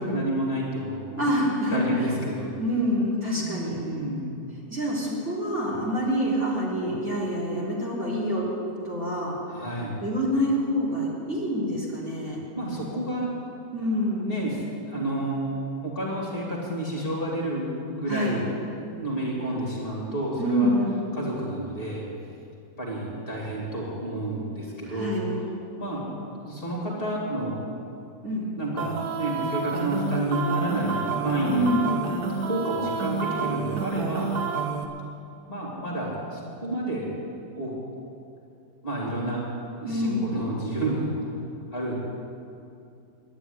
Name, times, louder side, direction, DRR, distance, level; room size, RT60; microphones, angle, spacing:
voice 1, 0.0-1.3 1.7-2.5 3.3-4.2 9.5-10.0 12.5-13.3 14.2-14.6 14.9-15.4 15.8-18.4 18.8-20.7 21.1-22.0 22.8-25.2 25.7-26.0 26.4-27.6 28.6-31.7 32.4-34.3 35.5-37.1 37.6-37.7 38.8-39.4 39.8-41.3 41.7-42.0, right 1 dB, 30° left, -4 dB, 2.8 m, -30 dB
voice 2, 1.2-1.8 2.6-3.8 4.7-8.4 8.8-9.4 10.0-12.4 13.7-14.3 18.1-18.4 20.4-21.0 24.9-25.4 28.2-28.5 31.4-32.0 39.9-40.3, equal, 40° right, -6 dB, 3.7 m, -26 dB
sound 1, 28.8-34.8, right 5 dB, 65° right, 1.6 m, -29 dB
11.0 x 10.5 x 9.5 m, 2.6 s
omnidirectional pair, 1.9 m